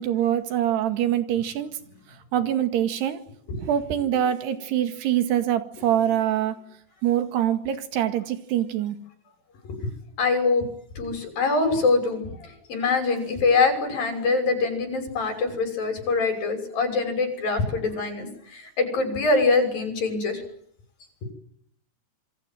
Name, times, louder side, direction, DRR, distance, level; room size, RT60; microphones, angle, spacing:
voice 1, 0.0-1.7 2.3-3.2 3.6-6.6 7.0-9.0, right 11 dB, 85° right, 9 dB, 4.1 m, -24 dB
voice 2, 10.2-10.7 11.0-20.4, left 3 dB, 60° left, 6 dB, 7.9 m, -24 dB
27.5 x 23.5 x 7.8 m, 0.68 s
omnidirectional pair, 4.6 m